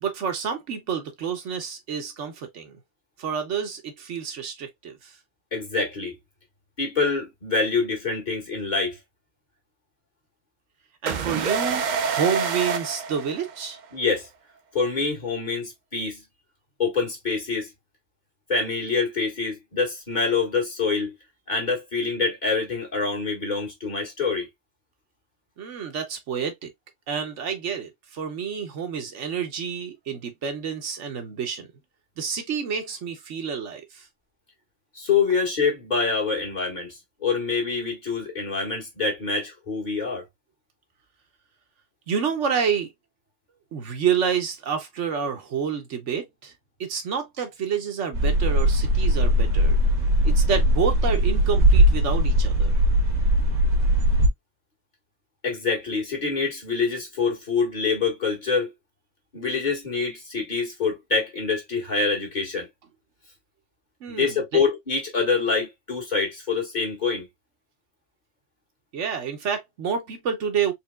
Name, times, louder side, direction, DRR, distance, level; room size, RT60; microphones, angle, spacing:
voice 1, 0.0-2.8 3.2-5.1 11.0-13.8 25.6-26.7 27.1-31.7 32.2-34.1 42.1-42.9 43.7-46.5 46.8-49.8 50.2-52.8 64.0-64.6 68.9-70.7, right 7 dB, 70° right, 1.2 m, -29 dB
voice 2, 5.5-6.2 6.8-9.0 13.9-14.3 14.7-16.2 16.8-17.7 18.5-21.1 21.5-24.5 35.0-40.2 55.4-58.7 59.3-62.7 64.1-67.3, left 4 dB, 40° left, 1.8 m, -26 dB
sound 1, 11.1-13.8, right 5 dB, 55° right, 0.5 m, -27 dB
sound 2, 48.1-54.3, equal, 90° right, 1.7 m, -19 dB
4.4 x 3.3 x 2.3 m
omnidirectional pair, 1.3 m